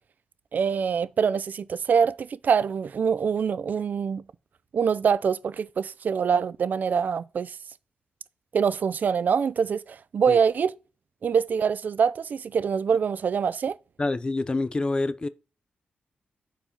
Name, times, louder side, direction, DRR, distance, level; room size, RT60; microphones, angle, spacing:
voice 1, 0.5-4.2 4.7-7.6 8.5-10.7 11.2-13.8, right 6 dB, 60° right, 0.3 m, -24 dB
voice 2, 14.0-15.3, left 2 dB, 30° left, 0.4 m, -26 dB
4.6 x 4.3 x 5.0 m
cardioid pair, 70°, 3 cm